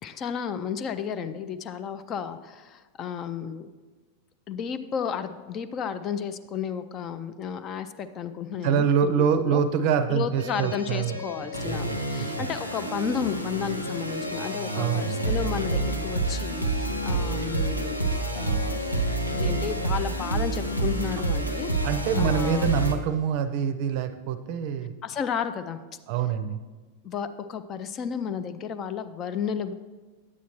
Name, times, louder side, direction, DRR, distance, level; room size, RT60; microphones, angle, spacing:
voice 1, 0.0-3.7 4.5-8.9 9.2-9.6 10.1-18.8 19.2-21.7 22.1-22.7 25.0-25.8 27.0-29.7, left 7 dB, 30° left, 11 dB, 0.4 m, -32 dB
voice 2, 8.6-12.5 14.7-15.3 21.8-24.9 26.1-26.6, right 7 dB, 45° right, 10 dB, 0.5 m, -26 dB
sound 1, 10.4-22.9, right 2 dB, 90° left, 0.7 m, -28 dB
9.7 x 8.1 x 3.0 m, 1.3 s
figure-of-eight pair, 90°, 0 cm